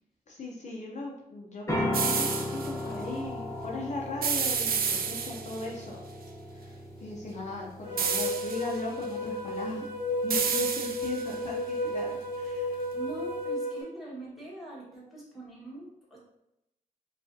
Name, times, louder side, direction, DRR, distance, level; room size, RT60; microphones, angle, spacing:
voice 1, 0.3-6.0 6.5-6.7 7.0-9.9 10.2-12.8, left 2 dB, 50° left, -3 dB, 0.6 m, -38 dB
sound 1, 1.7-13.4, left 1 dB, 20° left, 0.9 m, -38 dB
sound 2, 1.9-2.7 4.2-5.6 8.0-8.8 10.3-11.3, right 6 dB, 75° right, 0.4 m, -30 dB
sound 3, 7.8-13.8, left 1 dB, 35° right, 1.0 m, -33 dB
voice 2, 12.9-16.2, right 2 dB, ahead, -7 dB, 1.5 m, -42 dB
4.7 x 2.4 x 2.6 m, 0.84 s
wide cardioid pair, 120°, 15 cm